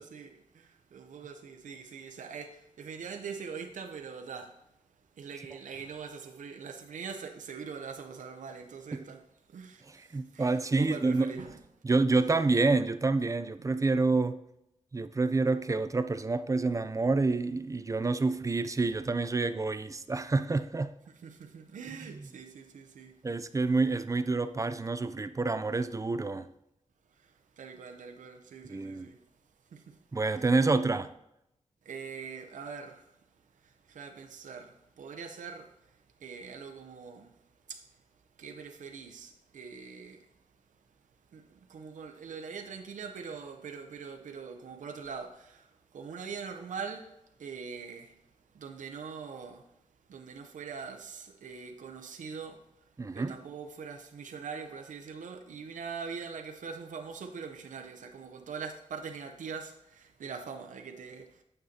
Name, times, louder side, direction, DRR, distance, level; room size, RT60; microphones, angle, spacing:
voice 1, 0.0-4.6 5.1-9.2 9.5-11.6 21.2-23.1 27.1-29.2 29.7-30.5 31.8-33.2 33.5-38.0 38.4-40.4 41.3-48.2 48.5-49.7 50.1-61.4, right 5 dB, 85° right, 0.6 m, -43 dB
voice 2, 9.9-11.3 11.8-14.4 14.9-20.9 23.2-26.5 28.7-29.1 30.1-31.1 53.0-53.3, right 3 dB, 25° right, 0.4 m, -28 dB
9.0 x 6.6 x 2.8 m
wide cardioid pair, 90°, 13 cm